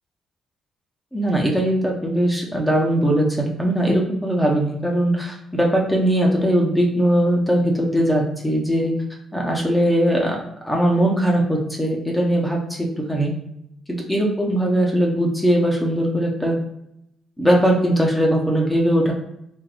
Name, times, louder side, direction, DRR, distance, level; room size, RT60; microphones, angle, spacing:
voice 1, 1.1-8.9 9.3-10.4 10.6-13.3 13.9-16.5 17.4-19.1, right 1 dB, 5° left, -1 dB, 0.8 m, -20 dB
3.4 x 2.6 x 2.4 m, 0.79 s
cardioid pair, 90°, 0 cm